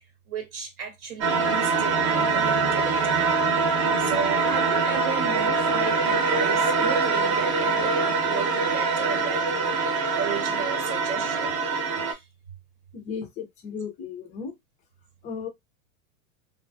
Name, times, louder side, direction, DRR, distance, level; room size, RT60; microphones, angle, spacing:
voice 1, 0.3-3.2 4.0-9.8 10.1-12.3, right 6 dB, 80° right, 1.2 m, -35 dB
sound 1, 1.2-12.1, right 4 dB, 35° right, 0.8 m, -24 dB
voice 2, 12.9-14.5 15.2-15.5, left 6 dB, 20° left, 0.3 m, -35 dB
2.4 x 2.2 x 2.5 m
supercardioid pair, 125°, 42 cm